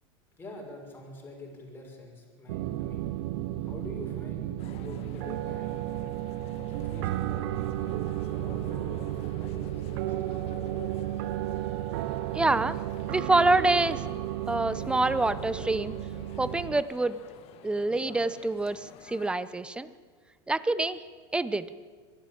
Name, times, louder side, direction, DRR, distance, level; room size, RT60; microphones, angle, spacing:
voice 1, 0.4-3.1 3.6-6.2 6.7-8.0 8.3-9.0 9.3-11.0, left 1 dB, 15° left, 0 dB, 6.1 m, -46 dB
sound 1, 2.5-16.8, right 14 dB, 65° right, 0.8 m, -33 dB
sound 2, 4.6-19.3, left 9 dB, 40° left, 1.6 m, -49 dB
voice 2, 12.3-12.8 13.1-14.0 14.5-15.9 16.4-17.2 17.6-19.9 20.5-21.0 21.3-21.7, right 2 dB, 5° right, 15 dB, 0.8 m, -26 dB
23.0 x 13.0 x 8.8 m, 1.5 s
supercardioid pair, 130°, 14 cm